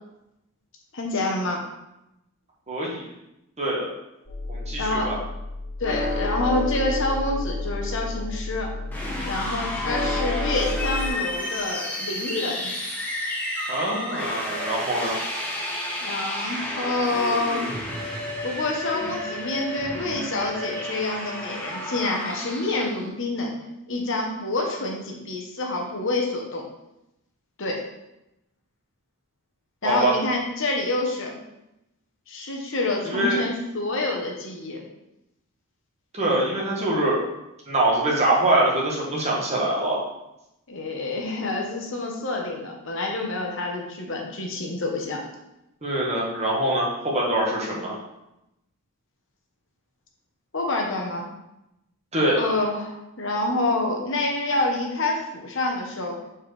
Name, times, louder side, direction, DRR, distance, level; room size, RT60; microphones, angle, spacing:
voice 1, 0.9-1.6 4.8-5.1 5.8-8.7 9.2-12.7 16.0-17.7 18.4-23.5 23.9-26.6 27.6-27.8 29.8-31.4 32.3-34.8 40.7-45.2 50.5-51.3 52.4-56.2, left 2 dB, 60° left, 1 dB, 1.0 m, -27 dB
voice 2, 2.7-3.1 3.6-3.9 4.5-5.1 13.7-15.2 29.8-30.1 33.0-33.4 36.1-37.2 37.7-40.0 45.8-48.0 52.1-52.4, right 1 dB, 30° right, -4 dB, 1.5 m, -24 dB
sound 1, 4.3-11.1, left 2 dB, 40° left, 2.3 m, -30 dB
sound 2, 8.9-23.0, left 1 dB, 10° left, 1.0 m, -31 dB
7.1 x 4.5 x 3.3 m, 0.88 s
head